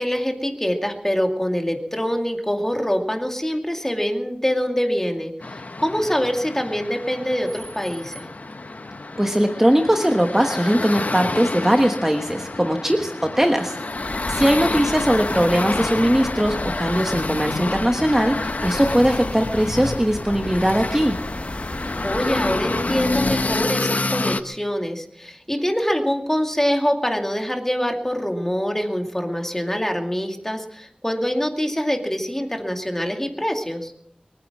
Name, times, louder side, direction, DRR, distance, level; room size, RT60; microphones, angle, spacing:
voice 1, 0.0-8.3 14.4-15.0 22.0-33.9, equal, 15° left, 3 dB, 2.4 m, -25 dB
sound 1, 5.4-24.4, left 2 dB, 70° left, 0.9 m, -28 dB
voice 2, 9.2-21.2, equal, 15° right, 4 dB, 1.3 m, -20 dB
sound 2, 13.9-23.7, left 1 dB, 50° left, 1.6 m, -35 dB
23.0 x 9.7 x 6.1 m, 0.73 s
wide cardioid pair, 60°, 3 cm